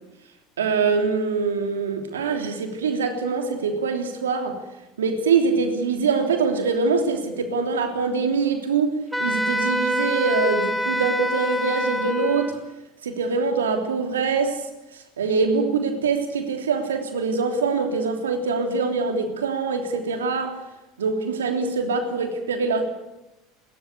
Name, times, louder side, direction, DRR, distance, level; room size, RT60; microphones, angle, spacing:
voice 1, 0.6-4.6 5.0-12.6 13.0-14.7 15.2-20.6 21.0-22.8, right 4 dB, 85° right, 3.2 m, -24 dB
Wind instrument woodwind instrument, 9.1-12.6, equal, ahead, 3.6 m, -25 dB
30.0 x 14.0 x 8.4 m
hypercardioid pair, 80°, 0 cm